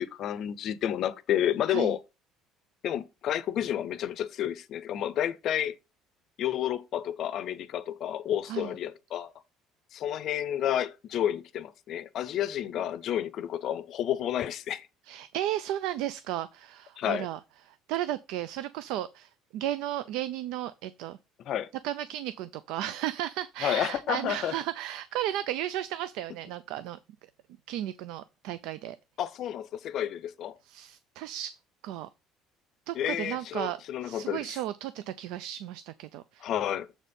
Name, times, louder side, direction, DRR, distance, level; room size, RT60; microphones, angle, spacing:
voice 1, 0.0-2.0 2.8-5.8 6.4-9.3 9.9-14.9 17.0-17.3 21.5-21.7 23.6-24.5 29.2-30.5 32.9-34.5 36.4-36.9, left 11 dB, 50° left, 0.5 m, -30 dB
voice 2, 15.1-17.4 17.7-21.2 21.8-27.0 27.7-29.0 30.6-31.6 31.8-32.1 32.9-36.5, right 12 dB, 80° right, 0.4 m, -34 dB
7.2 x 4.2 x 5.1 m
cardioid pair, 155°, 0 cm